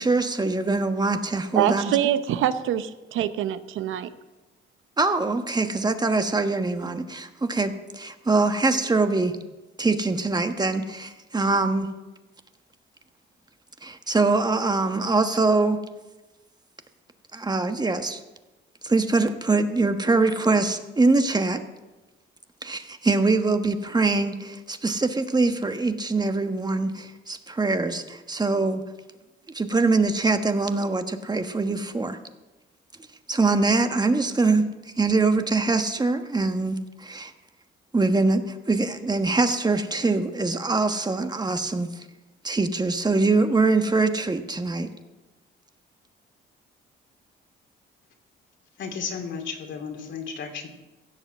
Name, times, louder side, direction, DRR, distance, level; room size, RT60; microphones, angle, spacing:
voice 1, 0.0-2.0 5.0-9.4 9.8-11.9 13.8-15.8 17.3-18.2 18.8-21.6 22.6-28.8 29.5-32.2 33.3-34.6 35.0-37.3 37.9-38.4 38.7-41.9 42.4-44.9, right 3 dB, 20° right, 7 dB, 1.2 m, -23 dB
voice 2, 1.6-4.1, right 11 dB, 85° right, 12 dB, 0.8 m, -25 dB
voice 3, 48.8-50.7, left 6 dB, 70° left, 4 dB, 2.7 m, -33 dB
16.5 x 7.2 x 7.5 m, 1.1 s
cardioid pair, 90°, 20 cm